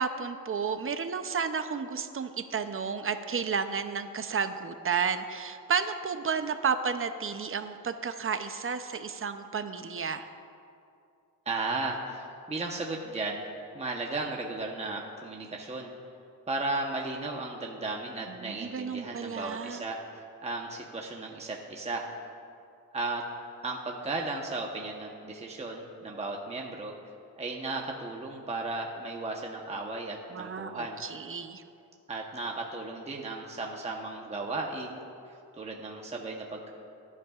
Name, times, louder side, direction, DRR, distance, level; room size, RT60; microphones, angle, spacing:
voice 1, 0.0-10.2 18.4-19.9 30.3-31.6, right 6 dB, 40° right, 9 dB, 0.6 m, -32 dB
voice 2, 11.5-13.5 13.7-15.9 16.5-22.1 22.9-23.2 23.6-26.9 27.4-31.0 32.1-35.0 35.3-36.7, right 2 dB, 20° right, 0 dB, 1.0 m, -35 dB
20.0 x 11.0 x 2.4 m, 2.5 s
cardioid pair, 110°, 35 cm